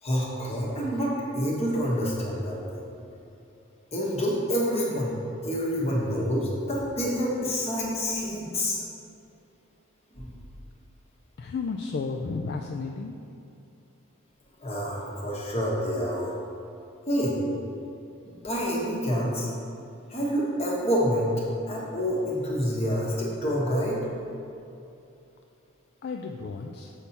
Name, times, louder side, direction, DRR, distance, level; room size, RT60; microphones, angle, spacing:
voice 1, 0.0-2.9 3.9-5.2 5.4-8.8 10.1-10.3 14.6-16.4 17.1-17.4 18.3-19.5 20.1-21.3 21.7-24.0, equal, 30° left, -4 dB, 1.3 m, -27 dB
voice 2, 11.4-13.2 26.0-26.9, left 4 dB, 50° left, 3 dB, 0.3 m, -33 dB
7.1 x 5.8 x 4.1 m, 2.7 s
head